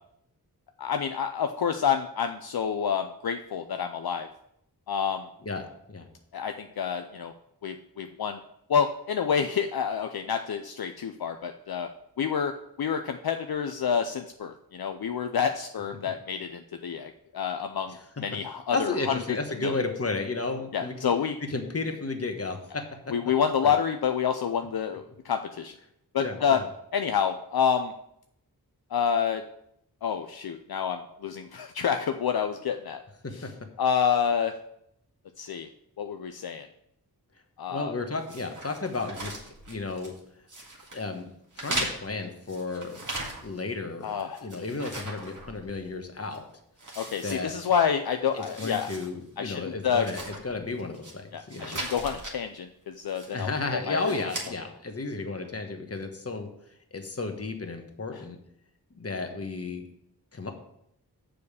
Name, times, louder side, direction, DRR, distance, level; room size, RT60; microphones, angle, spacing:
voice 1, 0.8-4.3 4.9-5.3 6.3-7.3 7.6-8.4 8.7-11.9 12.2-12.5 12.8-19.2 19.6-19.8 20.7-21.3 23.1-25.7 26.1-26.6 26.9-27.9 28.9-29.4 30.0-33.0 33.8-34.5 35.4-35.7 36.0-36.7 37.6-37.9 44.0-44.5 47.0-48.9 49.4-50.1 51.3-53.5 53.9-54.1, left 7 dB, 70° left, 7 dB, 0.6 m, -28 dB
voice 2, 5.4-6.1 17.9-18.0 18.7-21.1 21.5-23.1 23.6-23.7 26.2-26.7 33.4-33.5 37.7-39.4 39.7-40.1 40.9-41.3 41.6-43.0 43.4-44.1 44.4-46.4 47.2-47.7 48.3-51.8 53.3-56.5 56.9-58.4 59.0-59.8 60.3-60.5, left 3 dB, 40° left, 5 dB, 1.2 m, -33 dB
sound 1, 38.3-40.2 40.5-41.0 41.5-43.7 44.0-45.9 46.3-46.4 46.8-47.9 48.3-49.1 49.4-49.5 49.9-51.1 51.5-52.4 53.1-53.5 53.9-54.5, right 2 dB, 50° right, 2.0 m, -38 dB
6.9 x 5.1 x 6.7 m, 0.75 s
wide cardioid pair, 70°, 38 cm